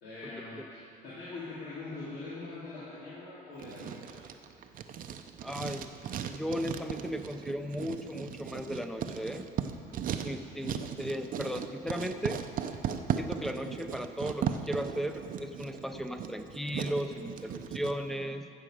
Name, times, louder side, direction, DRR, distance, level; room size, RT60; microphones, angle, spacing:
voice 1, 0.0-4.2, left 3 dB, 85° left, -10 dB, 2.8 m, -43 dB
Writing, 3.6-17.9, right 8 dB, 55° right, 0.6 m, -37 dB
voice 2, 5.4-5.9 6.3-9.4 10.2-12.4 13.2-18.5, equal, ahead, 6 dB, 0.6 m, -36 dB
15.0 x 6.6 x 5.0 m, 2.6 s
cardioid pair, 110°, 17 cm